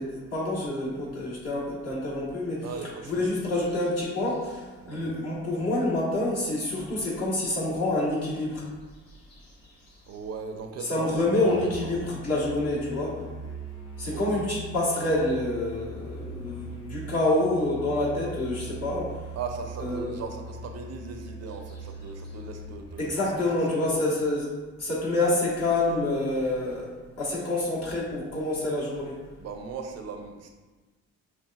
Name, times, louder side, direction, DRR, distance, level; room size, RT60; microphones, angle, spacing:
voice 1, 0.0-2.7 3.0-8.6 9.3-9.4 10.8-13.2 14.0-19.1 19.8-20.2 23.0-24.5 24.8-26.9 27.2-29.2, left 2 dB, 55° left, -6 dB, 1.4 m, -27 dB
voice 2, 2.6-3.3 4.8-5.1 10.1-11.1 11.5-11.9 14.1-14.4 19.4-23.4 23.8-24.2 29.4-30.5, right 5 dB, 60° right, 4 dB, 0.5 m, -38 dB
Musical instrument, 11.5-23.2, right 2 dB, 15° left, 0.8 m, -41 dB
5.6 x 2.5 x 2.3 m, 1.3 s
cardioid pair, 90°, 30 cm